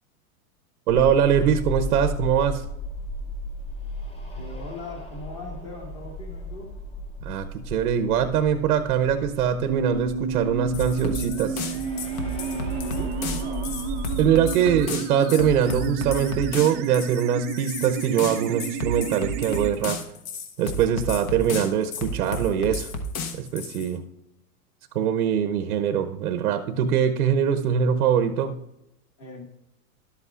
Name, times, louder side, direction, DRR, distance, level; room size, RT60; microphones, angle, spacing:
sound 1, 0.9-14.3, left 1 dB, 15° left, 0.8 m, -35 dB
voice 1, 0.9-2.7 7.2-11.7 14.2-20.0 20.6-22.9 23.4-24.0 24.9-28.6, right 8 dB, 85° right, 9 dB, 0.8 m, -22 dB
voice 2, 4.3-6.7 12.9-13.7 29.2-29.4, left 2 dB, 30° left, -2 dB, 2.0 m, -40 dB
sound 2, 9.7-19.7, right 7 dB, 25° right, 0.5 m, -32 dB
sound 3, 10.7-23.9, left 2 dB, 65° left, 1.3 m, -32 dB
11.5 x 8.3 x 2.4 m, 0.87 s
supercardioid pair, 145°, 45 cm